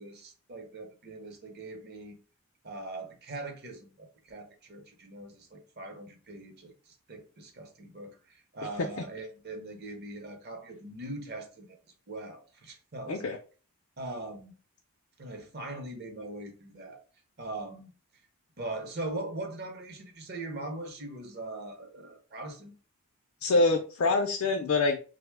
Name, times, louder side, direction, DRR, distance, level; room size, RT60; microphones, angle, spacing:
voice 1, 0.0-2.2 2.6-11.8 12.1-13.4 14.0-14.5 15.2-17.0 17.4-17.9 18.6-22.7, right 2 dB, 45° right, 0.6 m, -41 dB
voice 2, 23.4-25.1, left 3 dB, 60° left, 0.4 m, -25 dB
3.0 x 2.0 x 3.3 m
head